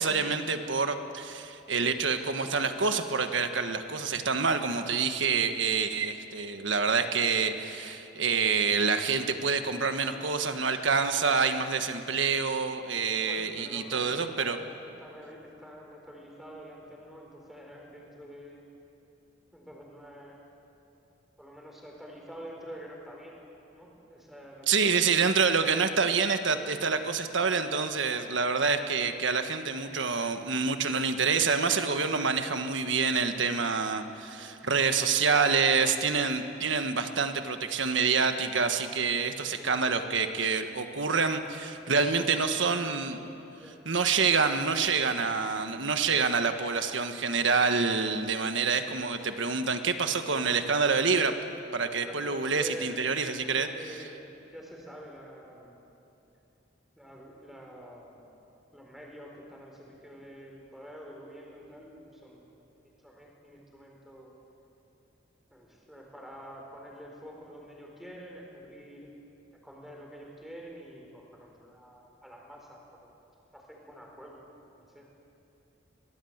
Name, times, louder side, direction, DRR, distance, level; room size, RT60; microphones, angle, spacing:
voice 1, 0.0-14.6 24.7-43.2 43.8-51.3 51.7-53.7, right 5 dB, 70° right, 7 dB, 1.4 m, -27 dB
voice 2, 13.2-18.6 19.5-20.4 21.4-23.4 23.7-24.7 39.4-39.8 41.9-43.0 43.6-43.9 44.1-44.6 52.0-53.1 53.4-55.8 57.0-58.3 58.7-62.5 63.0-64.3 65.5-69.1 69.6-73.1 73.5-74.4 74.8-75.1, equal, ahead, -1 dB, 4.3 m, -47 dB
24.0 x 19.0 x 8.0 m, 2.8 s
head